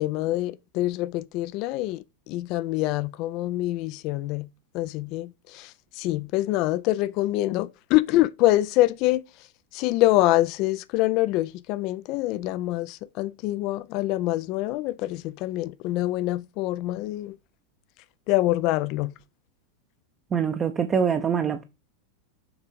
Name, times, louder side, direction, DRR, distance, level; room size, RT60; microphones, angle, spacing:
voice 1, 0.0-4.5 4.7-9.2 9.7-17.4 18.3-19.1, left 16 dB, 40° left, 0.4 m, -25 dB
voice 2, 20.3-21.6, right 7 dB, 25° right, 0.7 m, -24 dB
7.0 x 3.5 x 5.1 m
figure-of-eight pair, 90°, 0 cm